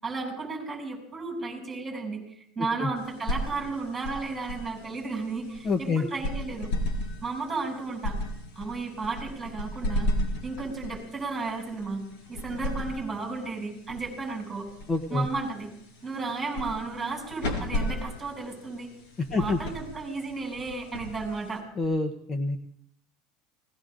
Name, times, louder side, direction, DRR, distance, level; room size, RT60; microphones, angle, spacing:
voice 1, 0.0-2.2 2.6-6.7 7.2-8.2 8.6-10.1 10.4-14.7 15.1-15.7 16.0-18.9 19.3-21.6, right 3 dB, 10° right, -1 dB, 7.4 m, -33 dB
sound 1, 3.0-21.8, left 1 dB, 70° left, 5.4 m, -35 dB
voice 2, 5.6-6.1 14.9-15.3 19.3-19.6 21.8-22.6, left 3 dB, 25° left, 5 dB, 1.0 m, -26 dB
28.5 x 19.0 x 2.6 m, 0.70 s
supercardioid pair, 130°, 0 cm